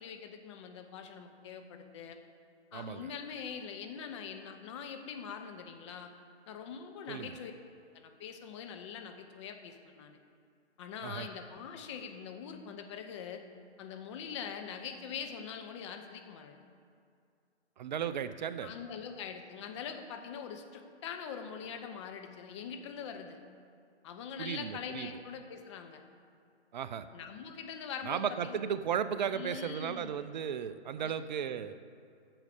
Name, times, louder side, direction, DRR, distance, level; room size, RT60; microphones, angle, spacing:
voice 1, 0.0-2.2 2.7-6.1 6.5-7.5 7.9-10.2 10.8-13.4 13.8-16.6 18.6-23.4 24.0-26.0 27.1-28.6 29.3-30.1 31.0-31.1, left 7 dB, 25° left, 5 dB, 0.7 m, -43 dB
voice 2, 2.7-3.1 7.1-7.4 11.0-11.3 17.8-18.7 24.4-25.1 26.7-27.1 28.0-31.8, right 8 dB, 40° right, 12 dB, 0.5 m, -35 dB
8.7 x 6.4 x 6.6 m, 2.4 s
hypercardioid pair, 140°, 34 cm